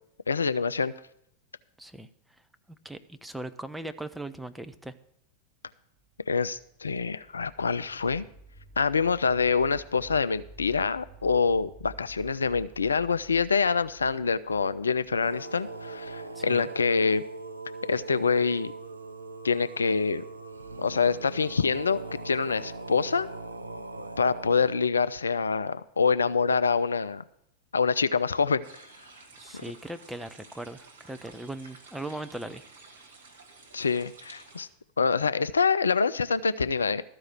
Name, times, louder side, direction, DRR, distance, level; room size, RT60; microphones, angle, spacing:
voice 1, 0.3-0.9 6.3-8.3 8.8-17.2 17.8-18.7 19.4-20.2 20.8-23.3 24.2-27.2 27.7-28.8 33.7-34.7 35.0-37.0, left 5 dB, 75° left, 15 dB, 0.3 m, -26 dB
voice 2, 1.8-2.1 2.8-5.0 16.3-16.7 29.4-32.6, right 1 dB, 5° right, 9 dB, 0.6 m, -39 dB
sound 1, 6.1-16.0, right 3 dB, 40° right, 2.0 m, -51 dB
sound 2, 15.2-24.7, right 3 dB, 80° right, 0.6 m, -40 dB
sound 3, 28.6-34.7, right 3 dB, 60° right, 2.0 m, -52 dB
13.0 x 4.8 x 8.6 m, 0.74 s
figure-of-eight pair, 90°, 0 cm